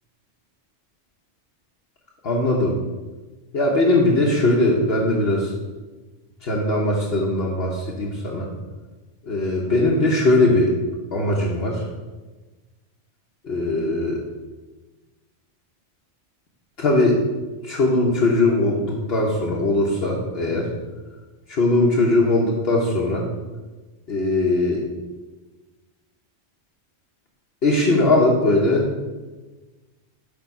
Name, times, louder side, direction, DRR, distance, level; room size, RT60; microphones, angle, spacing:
voice 1, 2.2-2.8 3.5-5.5 6.4-8.5 9.2-10.7 11.1-11.8 13.4-14.2 16.8-17.2 17.6-20.7 21.5-23.3 24.1-24.8 27.6-28.9, left 2 dB, 60° left, -2 dB, 1.1 m, -20 dB
8.3 x 3.5 x 5.3 m, 1.2 s
omnidirectional pair, 1.2 m